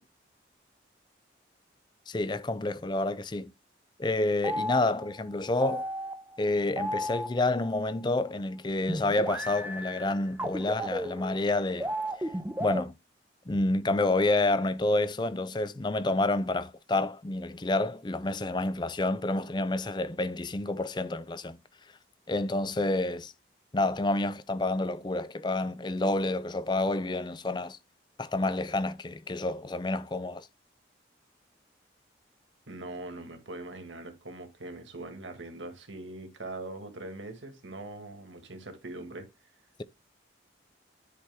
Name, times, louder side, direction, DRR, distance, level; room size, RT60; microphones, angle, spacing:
voice 1, 2.1-3.5 4.0-5.9 6.4-11.9 12.6-12.9 13.5-21.6 22.3-23.3 23.7-27.8 28.2-30.5, left 2 dB, 25° left, 0.4 m, -29 dB
sound 1, 4.4-8.0 8.9-12.8, equal, 10° right, 0.7 m, -34 dB
voice 2, 32.7-39.3, right 2 dB, 85° right, 1.9 m, -42 dB
10.5 x 4.3 x 3.5 m
head